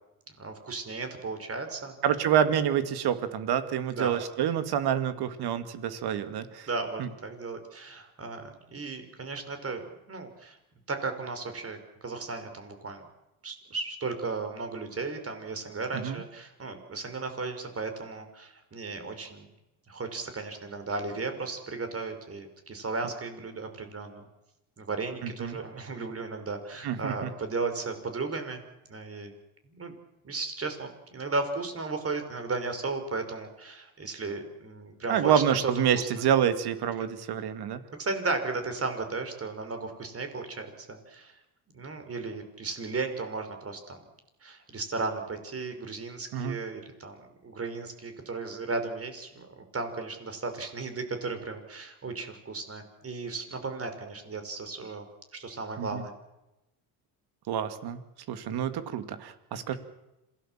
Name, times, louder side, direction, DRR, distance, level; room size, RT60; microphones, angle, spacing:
voice 1, 0.4-2.0 3.9-4.2 6.7-9.8 10.1-10.6 10.9-13.0 13.4-19.5 19.9-24.2 24.8-28.6 28.9-29.3 29.7-29.9 30.2-35.7 36.0-36.1 37.0-37.1 38.0-41.4 41.7-44.0 44.4-55.1 55.3-56.1 59.7-59.8, right 3 dB, 30° right, 7 dB, 5.5 m, -35 dB
voice 2, 2.0-6.7 7.0-7.1 15.9-16.2 25.2-25.6 26.8-27.3 35.1-37.8 46.3-46.6 55.8-56.0 57.5-58.0 58.3-59.7, right 9 dB, 60° right, 10 dB, 2.5 m, -27 dB
26.5 x 18.5 x 7.6 m, 0.96 s
supercardioid pair, 80°, 43 cm